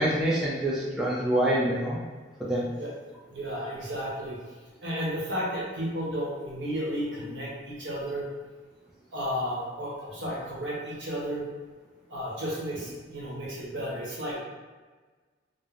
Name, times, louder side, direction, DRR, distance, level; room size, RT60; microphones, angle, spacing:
voice 1, 0.0-2.0 2.4-2.7, right 1 dB, 5° right, -6 dB, 0.3 m, -26 dB
voice 2, 3.3-4.4 4.8-8.3 9.1-11.4 12.1-14.4, equal, 80° right, -6 dB, 0.9 m, -33 dB
3.1 x 2.0 x 2.4 m, 1.4 s
head